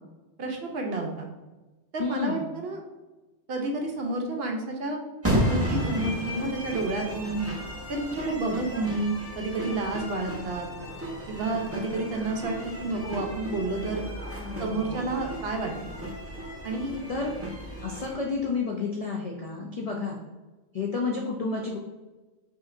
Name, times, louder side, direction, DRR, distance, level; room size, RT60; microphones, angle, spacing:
voice 1, 0.4-1.3 1.9-2.8 3.5-5.0 5.5-7.4 7.9-10.7 11.3-14.0 14.6-15.8 16.6-17.0, right 2 dB, 60° right, 2 dB, 0.8 m, -30 dB
voice 2, 2.0-2.5 14.4-14.9 17.1-17.3 17.8-20.2 20.7-21.8, left 4 dB, 65° left, 0 dB, 0.3 m, -30 dB
sound 1, 5.2-18.1, equal, 15° right, 0.6 m, -33 dB
5.1 x 2.8 x 2.5 m, 1.2 s
omnidirectional pair, 1.3 m